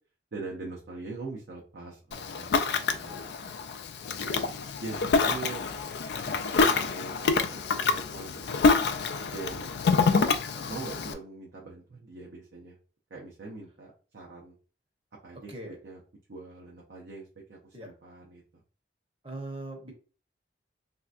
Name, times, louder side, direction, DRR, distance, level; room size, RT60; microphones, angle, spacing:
voice 1, 0.3-3.5 4.2-4.5 4.8-5.7 6.2-8.7 9.3-9.7 10.5-12.8 13.1-14.5 15.2-15.5 15.8-16.0 16.3-18.6, right 3 dB, 75° right, -3 dB, 0.6 m, -43 dB
Ocean, 2.1-11.1, left 4 dB, 65° left, 0.3 m, -27 dB
voice 2, 19.2-19.9, right 2 dB, 30° right, 1 dB, 0.8 m, -40 dB
3.3 x 2.7 x 2.4 m, 0.38 s
head